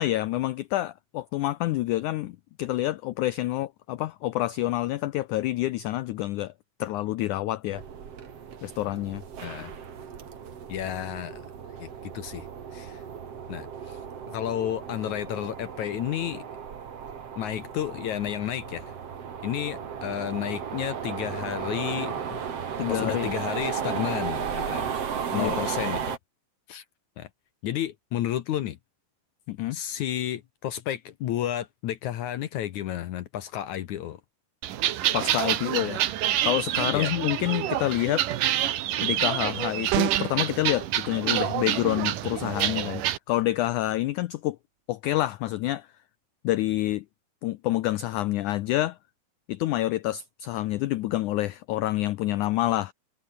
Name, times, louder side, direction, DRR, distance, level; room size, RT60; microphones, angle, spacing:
voice 1, 0.0-6.5 6.8-7.8 8.6-9.2 22.8-23.3 25.3-25.6 29.5-29.8 35.1-36.0 36.4-38.3 39.0-44.6 44.9-45.9 46.4-47.0 47.4-49.0 49.5-52.9, left 15 dB, 90° left, 1.7 m, -27 dB
sound 1, 7.7-26.2, right 7 dB, 45° right, 2.9 m, -35 dB
voice 2, 9.4-9.7 10.7-11.4 11.8-12.5 12.7-13.0 13.5-14.0 14.3-16.5 17.4-18.9 19.4-22.4 22.9-24.9 25.3-26.2 26.7-26.8 27.2-27.3 27.6-28.8 29.7-34.2 36.9-37.1, left 11 dB, 65° left, 2.0 m, -32 dB
sound 2, 34.6-43.2, right 12 dB, 65° right, 2.8 m, -27 dB
sound 3, 39.9-40.5, right 19 dB, 80° right, 1.9 m, -26 dB
omnidirectional pair, 4.3 m